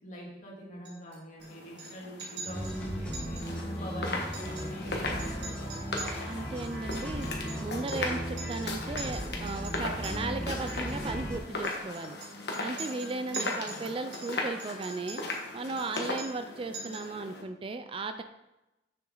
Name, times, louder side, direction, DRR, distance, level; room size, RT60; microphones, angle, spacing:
voice 1, 0.0-6.1 13.3-13.9, equal, 45° left, -2 dB, 2.3 m, -45 dB
Chink clink, 0.9-1.5 1.8-1.9 2.2-2.8 3.1-3.5 3.7-3.8 4.2-4.9 5.2-8.1 8.4-8.7 9.0-10.1 10.7-11.0 11.6-13.8 14.1-15.4 15.8-16.5 16.7-17.1, right 4 dB, 75° right, 3.3 m, -44 dB
sound 1, 1.4-17.4, left 2 dB, 65° left, 1.4 m, -38 dB
sound 2, 2.5-11.4, equal, 5° left, 1.7 m, -36 dB
voice 2, 6.3-7.3 7.6-12.2 12.6-15.2 15.5-18.2, right 3 dB, 30° right, 8 dB, 0.4 m, -36 dB
7.8 x 6.8 x 3.9 m, 0.96 s
head